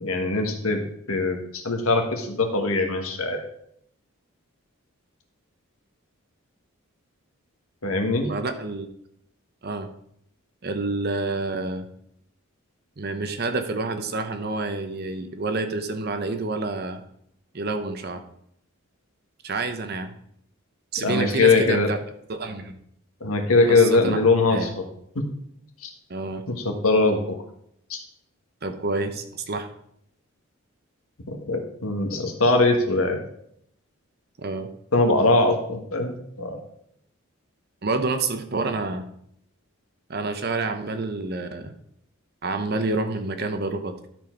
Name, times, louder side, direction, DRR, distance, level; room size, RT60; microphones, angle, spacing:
voice 1, 0.0-0.8 1.1-3.4 7.8-8.3 21.0-21.9 23.2-24.8 25.1-25.3 25.8-25.9 26.5-27.4 27.9-28.0 31.3-33.2 34.9-36.6, left 3 dB, 80° left, 4 dB, 1.4 m, -21 dB
voice 2, 8.2-8.9 9.6-9.9 10.6-11.9 13.0-17.0 17.5-18.2 19.4-20.1 20.9-22.0 22.3-22.8 23.7-24.2 24.5-24.7 26.1-26.4 28.6-29.7 34.4-34.7 37.8-39.1 40.1-41.7 42.4-43.9, right 3 dB, 45° right, 8 dB, 0.8 m, -28 dB
12.5 x 4.5 x 4.5 m, 0.71 s
head